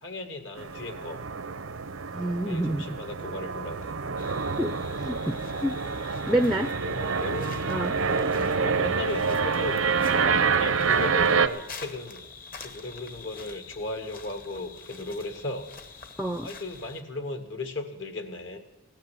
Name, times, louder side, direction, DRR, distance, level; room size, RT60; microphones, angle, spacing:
voice 1, 0.0-1.2 2.4-3.9 6.8-7.7 8.1-9.8 10.1-12.3 12.6-15.7 16.4-18.6, left 2 dB, 65° left, 6 dB, 1.9 m, -36 dB
sound 1, 0.6-11.5, right 5 dB, 85° right, 0.8 m, -27 dB
voice 2, 2.1-2.9 4.6-4.8 5.1-6.7 7.7-8.0 16.2-16.5, right 1 dB, ahead, 8 dB, 0.5 m, -28 dB
sound 2, 4.2-17.0, left 5 dB, 45° left, 1.2 m, -46 dB
16.5 x 10.5 x 7.6 m, 1.1 s
head